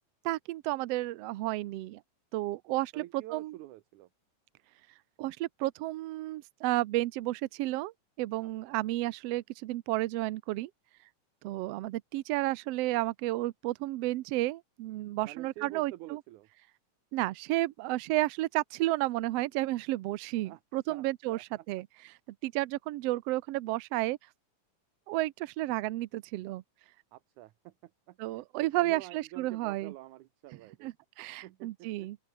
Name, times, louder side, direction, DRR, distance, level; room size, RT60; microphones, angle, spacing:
voice 1, 0.2-2.0 2.3-3.5 5.2-7.9 8.2-10.7 11.4-16.2 17.1-21.4 21.7-21.9 22.4-24.2 25.1-26.6 28.2-29.9 30.8-32.2, right 17 dB, 90° right, 1.4 m, -32 dB
voice 2, 2.9-4.1 8.4-8.8 15.2-16.5 20.5-20.6 20.9-21.7 27.1-30.9 31.4-32.1, right 16 dB, 75° right, 2.2 m, -48 dB
open air
omnidirectional pair, 3.8 m